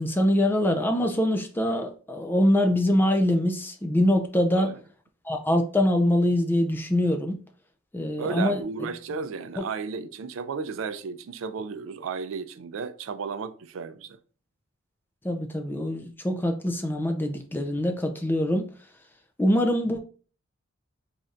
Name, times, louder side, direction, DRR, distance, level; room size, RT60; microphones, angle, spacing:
voice 1, 0.0-4.7 5.3-7.4 7.9-8.6 15.2-18.7 19.4-20.0, left 1 dB, 10° left, 0.4 m, -24 dB
voice 2, 8.2-14.2, right 5 dB, 75° right, 0.4 m, -34 dB
3.3 x 2.6 x 3.7 m
head